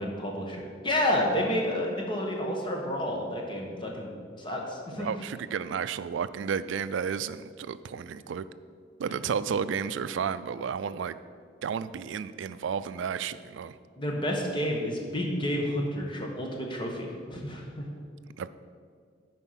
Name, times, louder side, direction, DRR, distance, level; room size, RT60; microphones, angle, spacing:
voice 1, 0.0-4.1 4.4-5.1 14.0-17.9, left 1 dB, 25° left, 0 dB, 1.2 m, -30 dB
voice 2, 4.9-8.5 9.0-11.2 11.6-13.7 18.4-18.5, right 6 dB, 75° right, 14 dB, 0.3 m, -32 dB
10.0 x 4.5 x 5.7 m, 2.1 s
head